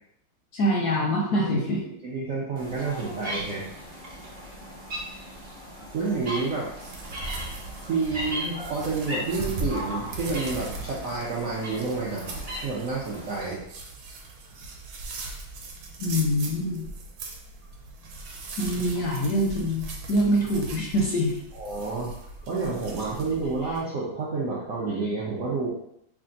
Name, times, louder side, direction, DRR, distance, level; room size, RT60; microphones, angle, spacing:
voice 1, 0.5-1.8 16.0-16.9 18.6-21.3, equal, 70° left, -2 dB, 0.9 m, -25 dB
voice 2, 2.0-3.7 5.9-6.7 7.9-12.2 12.6-13.6 21.5-25.7, right 4 dB, 70° right, -6 dB, 0.7 m, -29 dB
sound 1, 2.6-13.5, equal, 30° right, 0.8 m, -38 dB
sound 2, 6.8-23.8, right 2 dB, 85° right, 1.4 m, -39 dB
3.3 x 2.4 x 3.8 m, 0.75 s
omnidirectional pair, 2.1 m